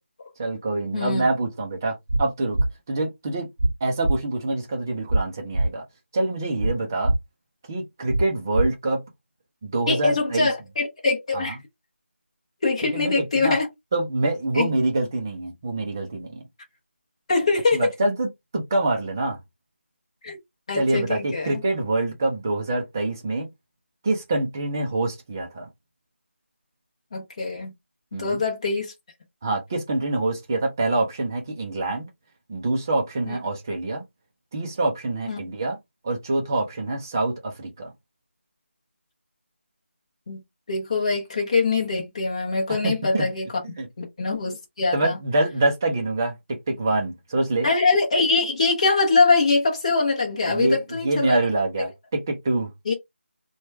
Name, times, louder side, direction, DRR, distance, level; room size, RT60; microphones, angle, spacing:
voice 1, 0.4-2.6 2.9-3.5 3.8-5.8 6.1-7.1 7.7-9.0 9.6-10.5 11.3-11.5 12.9-13.6 13.9-16.4 17.7-19.4 20.8-23.5 24.0-25.7 28.1-28.4 29.4-32.1 32.5-34.0 34.5-35.8 36.0-37.9 42.8-43.3 43.8-43.9 44.9-47.7 50.5-52.7, right 2 dB, 15° right, 0.5 m, -25 dB
voice 2, 0.9-1.3 9.9-11.6 12.6-13.7 14.5-14.7 17.3-17.8 20.2-20.4 20.7-21.6 27.1-27.7 28.1-28.9 33.2-33.4 35.3-35.4 40.3-40.4 40.7-43.6 44.0-45.2 47.6-51.4 52.9-53.0, left 3 dB, 30° left, 0.8 m, -23 dB
sound 1, 2.1-2.2 2.5-2.7 3.6-3.7 4.0-4.2 5.1-5.2 5.5-5.7 6.6-6.7 7.0-7.2 8.1-8.2 8.5-8.7, right 1 dB, 75° right, 0.7 m, -21 dB
3.0 x 2.2 x 3.2 m
figure-of-eight pair, 170°, 7 cm